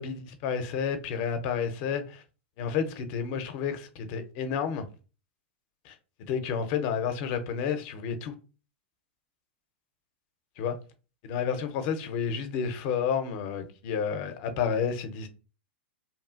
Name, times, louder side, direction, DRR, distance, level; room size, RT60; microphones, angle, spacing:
voice 1, 0.0-2.2 2.6-4.9 5.8-5.9 6.3-8.3 10.6-10.8 11.2-15.3, left 7 dB, 50° left, 0.5 m, -30 dB
2.9 x 2.4 x 2.3 m
hypercardioid pair, 110°, 6 cm